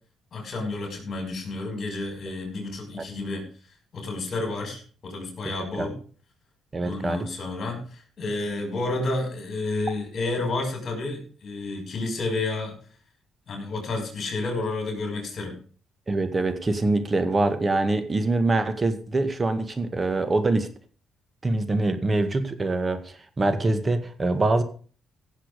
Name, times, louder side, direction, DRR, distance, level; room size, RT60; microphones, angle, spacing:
voice 1, 0.3-3.5 3.9-6.0 6.8-12.7 13.5-15.6, left 2 dB, 50° left, 3 dB, 6.1 m, -30 dB
voice 2, 6.7-7.3 16.1-20.7 21.4-24.6, right 2 dB, 30° right, 10 dB, 1.8 m, -24 dB
16.0 x 7.4 x 5.3 m, 0.41 s
cardioid pair, 90°, 0 cm